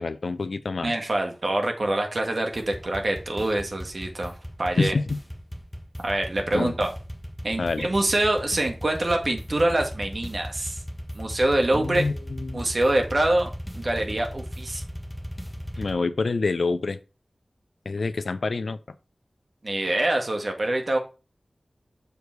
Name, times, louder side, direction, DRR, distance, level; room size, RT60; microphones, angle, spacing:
voice 1, 0.0-0.9 4.8-5.2 6.5-6.7 7.6-7.9 11.7-12.6 15.8-17.0 17.9-18.8, left 3 dB, 80° left, 0.5 m, -27 dB
voice 2, 0.8-4.9 6.0-6.9 7.4-10.8 11.1-12.1 12.5-14.8 19.6-21.0, right 1 dB, 50° right, 1.7 m, -25 dB
sound 1, 2.5-15.9, equal, 10° left, 1.2 m, -37 dB
6.8 x 4.8 x 4.7 m
wide cardioid pair, 80°, 0 cm